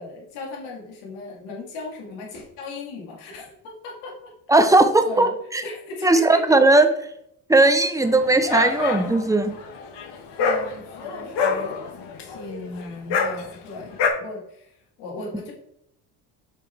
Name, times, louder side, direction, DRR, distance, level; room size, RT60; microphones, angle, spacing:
voice 1, 0.0-4.3 5.0-5.3 5.6-6.6 10.4-11.7 12.2-15.5, left 2 dB, 80° left, -1 dB, 2.3 m, -37 dB
voice 2, 4.5-5.6 6.0-6.9 7.5-9.5, right 2 dB, 5° right, 8 dB, 0.9 m, -17 dB
Dog, 8.0-14.1, left 5 dB, 55° left, 1.4 m, -27 dB
5.9 x 4.9 x 4.5 m, 0.73 s
hypercardioid pair, 70°, 48 cm